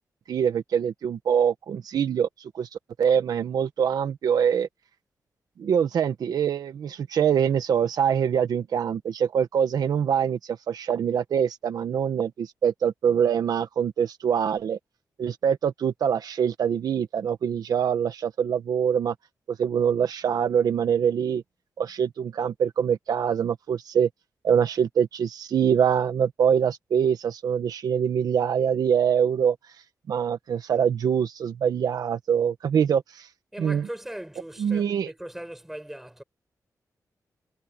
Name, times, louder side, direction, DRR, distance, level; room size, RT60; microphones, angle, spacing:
voice 1, 0.3-2.7 3.0-4.7 5.6-14.8 15.2-19.1 19.5-21.4 21.8-24.1 24.4-29.6 30.1-33.3 33.6-33.9 34.6-35.1, right 8 dB, 80° right, 1.3 m, -24 dB
voice 2, 33.5-36.2, right 1 dB, 5° right, 6.9 m, -39 dB
wide cardioid pair, 175°, 6 cm